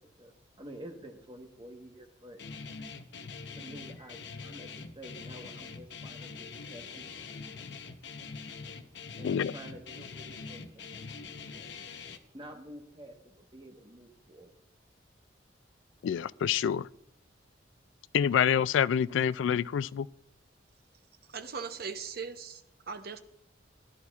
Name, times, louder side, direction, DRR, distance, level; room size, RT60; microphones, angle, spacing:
voice 1, 0.0-2.4 3.5-7.1 9.2-11.0 12.3-14.5, right 1 dB, 25° right, 1.2 m, -49 dB
Guitar, 2.4-12.2, left 4 dB, 65° left, 0.8 m, -44 dB
voice 2, 16.0-16.9 18.1-20.1, left 8 dB, 85° left, 0.3 m, -27 dB
voice 3, 21.3-23.2, right 5 dB, 55° right, 0.8 m, -39 dB
17.0 x 11.0 x 2.4 m
head